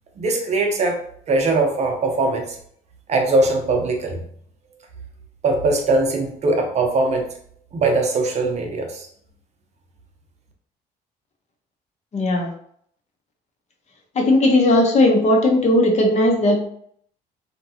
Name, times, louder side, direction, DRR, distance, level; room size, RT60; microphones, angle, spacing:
voice 1, 0.2-1.0 1.3-2.6 3.1-4.2 5.4-7.3 7.7-9.1, right 2 dB, 40° right, 3 dB, 0.6 m, -20 dB
voice 2, 12.1-12.5 14.2-16.6, left 1 dB, 40° left, 1 dB, 0.7 m, -17 dB
2.8 x 2.2 x 2.7 m, 0.65 s
cardioid pair, 110°, 17 cm